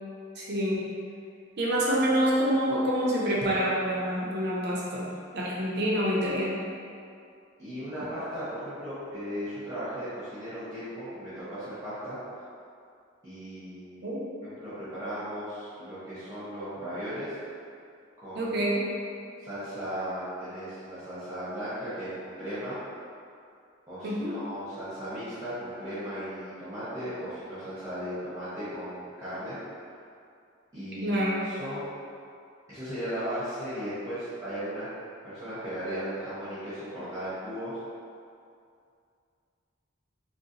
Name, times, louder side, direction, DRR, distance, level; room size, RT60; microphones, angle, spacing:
voice 1, 0.4-0.9 1.6-6.6 14.0-14.2 18.3-18.8 24.0-24.4 31.0-31.4, equal, 55° right, -5 dB, 0.6 m, -27 dB
voice 2, 7.6-12.2 13.2-14.0 14.4-17.3 18.2-18.5 19.4-22.8 23.9-29.6 30.7-31.2 31.4-31.8 32.7-34.9 35.2-37.8, equal, 15° right, -15 dB, 0.8 m, -36 dB
3.9 x 2.1 x 2.6 m, 2.4 s
head